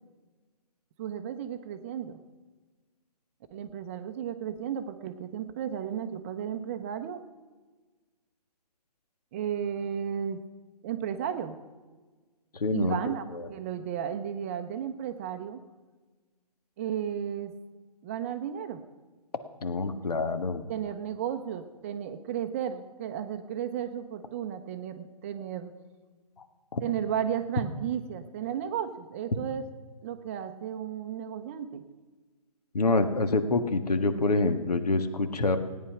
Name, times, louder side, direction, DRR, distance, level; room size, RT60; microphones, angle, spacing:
voice 1, 1.0-2.2 3.5-7.3 9.3-10.5 10.8-11.6 12.7-13.2 13.5-15.6 16.8-17.6 18.0-18.8 19.8-20.0 20.7-25.7 26.8-29.7 30.0-31.9, right 9 dB, 20° right, 8 dB, 0.6 m, -34 dB
voice 2, 12.5-13.5 19.6-20.6 26.4-26.5 26.7-26.8 32.7-35.6, left 3 dB, 80° left, 9 dB, 1.6 m, -27 dB
17.0 x 9.8 x 5.8 m, 1.3 s
hypercardioid pair, 155°, 20 cm